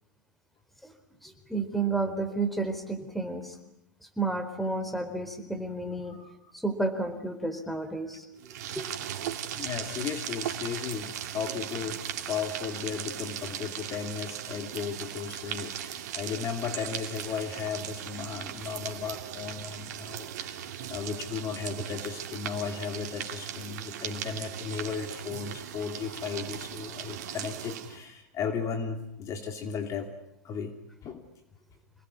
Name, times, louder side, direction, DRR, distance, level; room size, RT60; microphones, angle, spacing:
voice 1, 1.2-3.5 4.2-6.2 6.5-8.3 8.7-8.9, right 3 dB, ahead, 8 dB, 4.2 m, -31 dB
sound 1, 8.4-28.0, right 10 dB, 65° right, 2.7 m, -38 dB
voice 2, 9.6-30.1 30.4-30.7 31.0-31.2, left 6 dB, 35° left, 6 dB, 2.9 m, -35 dB
27.5 x 20.0 x 9.8 m, 0.81 s
hypercardioid pair, 110°, 10 cm